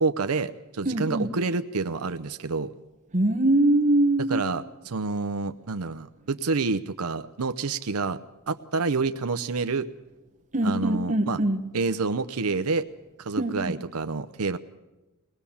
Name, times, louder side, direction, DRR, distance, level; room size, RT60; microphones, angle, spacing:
voice 1, 0.0-2.7 4.3-8.2 8.5-9.9 10.6-11.4 11.7-12.8 13.2-14.6, right 4 dB, 80° right, 9 dB, 0.7 m, -28 dB
voice 2, 0.8-1.3 3.1-4.5 10.5-11.6 13.4-13.8, right 1 dB, 35° right, 5 dB, 1.5 m, -23 dB
23.5 x 19.0 x 7.1 m, 1.1 s
head